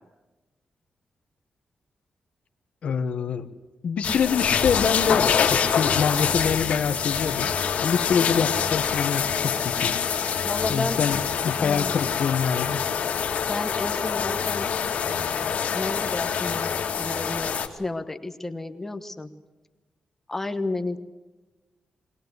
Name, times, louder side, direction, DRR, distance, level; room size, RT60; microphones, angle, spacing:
voice 1, 2.8-3.5 3.8-10.0 10.7-12.8, left 6 dB, 60° left, 9 dB, 1.2 m, -25 dB
sound 1, 4.0-17.7, left 7 dB, 75° left, 2.0 m, -25 dB
voice 2, 10.4-11.0 11.6-11.9 13.5-14.7 15.0-19.3 20.3-21.0, left 2 dB, 15° left, 7 dB, 1.2 m, -32 dB
21.0 x 20.5 x 8.1 m, 1.1 s
wide cardioid pair, 165°, 2 cm